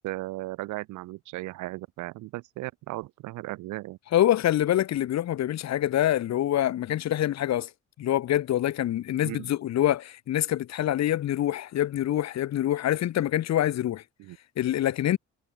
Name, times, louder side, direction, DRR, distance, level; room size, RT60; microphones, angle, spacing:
voice 1, 0.0-4.0 9.2-9.5 14.2-14.4, right 18 dB, 80° right, 0.5 m, -36 dB
voice 2, 4.1-7.7 8.0-14.0 14.6-15.2, left 12 dB, 60° left, 0.9 m, -25 dB
cardioid pair, 90°, 30 cm